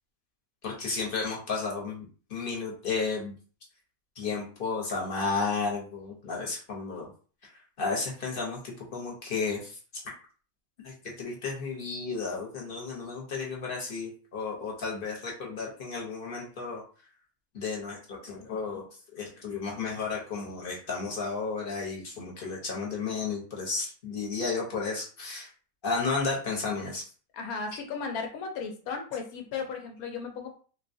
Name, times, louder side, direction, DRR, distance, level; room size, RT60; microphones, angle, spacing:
voice 1, 0.6-3.3 4.2-7.1 7.8-9.8 10.8-16.8 17.5-18.8 19.1-25.5 25.8-27.1, left 4 dB, 45° left, -2 dB, 1.0 m, -33 dB
voice 2, 27.3-30.6, left 5 dB, 85° left, 3 dB, 1.2 m, -35 dB
3.7 x 2.3 x 2.6 m, 0.40 s
omnidirectional pair, 1.5 m